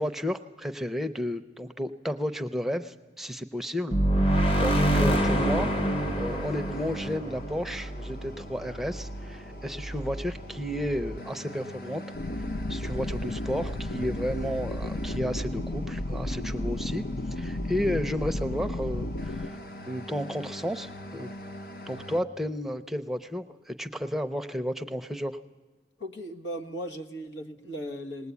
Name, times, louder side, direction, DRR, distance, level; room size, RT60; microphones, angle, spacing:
voice 1, 0.0-5.7 6.2-12.0 12.3-17.0 17.3-19.6 19.9-21.3 21.9-25.4, equal, ahead, 8 dB, 0.6 m, -32 dB
sound 1, 3.9-8.5, right 1 dB, 30° left, 1.1 m, -25 dB
sound 2, 5.1-22.2, equal, 55° left, 1.0 m, -40 dB
sound 3, 12.2-19.5, left 1 dB, 75° left, 0.7 m, -33 dB
voice 2, 26.0-28.3, equal, 90° left, 5 dB, 1.7 m, -37 dB
20.0 x 19.0 x 8.3 m, 1.4 s
head